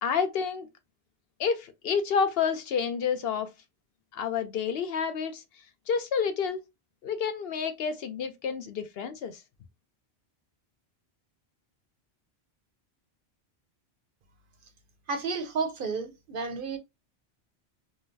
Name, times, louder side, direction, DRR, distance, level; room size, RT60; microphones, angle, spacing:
voice 1, 0.0-0.7 1.4-3.5 4.1-5.4 5.9-6.6 7.0-9.4, left 6 dB, 65° left, 0.7 m, -29 dB
voice 2, 15.1-16.8, right 4 dB, 60° right, 0.7 m, -31 dB
3.8 x 2.0 x 2.6 m
omnidirectional pair, 1.1 m